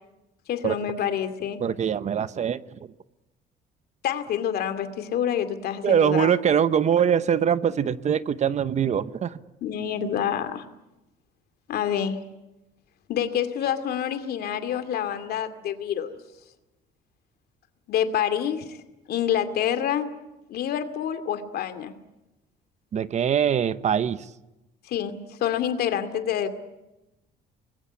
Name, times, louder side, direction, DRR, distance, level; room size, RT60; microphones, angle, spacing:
voice 1, 0.5-1.6 4.0-6.3 9.6-10.6 11.7-12.2 13.1-16.2 17.9-18.8 19.1-20.1 20.5-21.9 24.9-26.5, left 9 dB, 70° left, 10 dB, 2.5 m, -27 dB
voice 2, 1.6-2.8 5.8-9.4 22.9-24.3, right 8 dB, 45° right, 15 dB, 1.0 m, -23 dB
25.5 x 21.0 x 9.9 m, 0.97 s
cardioid pair, 110°, 17 cm